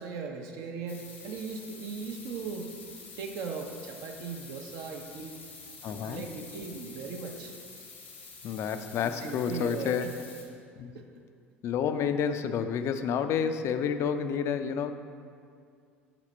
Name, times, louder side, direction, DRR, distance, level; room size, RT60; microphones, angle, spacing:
voice 1, 0.0-2.7 3.2-5.4 6.1-7.5 9.0-10.1 10.9-11.0, right 5 dB, 55° right, 2 dB, 0.6 m, -38 dB
sound 1, 0.9-10.4, left 4 dB, 80° left, 0.9 m, -48 dB
voice 2, 5.8-6.2 8.4-10.1 10.8-10.9 11.6-14.9, left 7 dB, 45° left, 9 dB, 0.3 m, -29 dB
5.9 x 4.1 x 4.2 m, 2.3 s
figure-of-eight pair, 65°, 6 cm